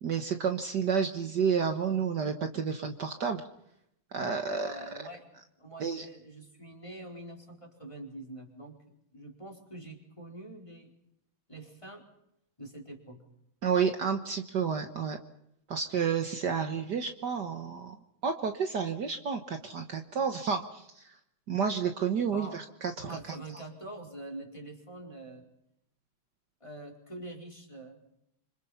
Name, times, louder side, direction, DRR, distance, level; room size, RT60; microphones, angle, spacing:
voice 1, 0.0-3.4 4.1-4.8 5.8-6.1 13.6-15.2 15.7-18.0 18.2-21.1 21.5-23.2, right 6 dB, 55° right, 6 dB, 1.8 m, -30 dB
voice 2, 4.5-5.3 5.6-8.8 9.1-10.9 11.5-12.1 12.6-13.2 22.3-22.6 23.0-25.5 26.6-28.0, right 1 dB, 15° left, 1 dB, 4.7 m, -45 dB
28.0 x 26.0 x 5.7 m, 0.76 s
omnidirectional pair, 2.3 m